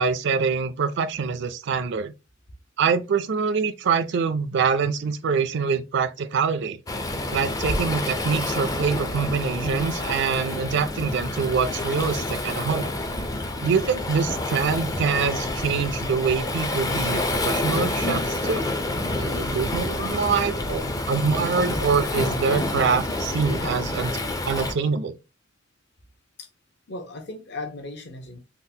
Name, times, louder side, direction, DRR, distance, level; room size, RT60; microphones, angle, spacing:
voice 1, 0.0-2.1 2.8-6.8 7.3-12.9 13.6-18.6 19.1-24.2 24.5-25.2, right 5 dB, 60° right, 0.4 m, -25 dB
Waves surf, 6.9-24.7, left 2 dB, 20° left, 0.4 m, -28 dB
voice 2, 26.9-28.4, left 2 dB, 60° left, 0.7 m, -36 dB
3.6 x 2.1 x 2.7 m
head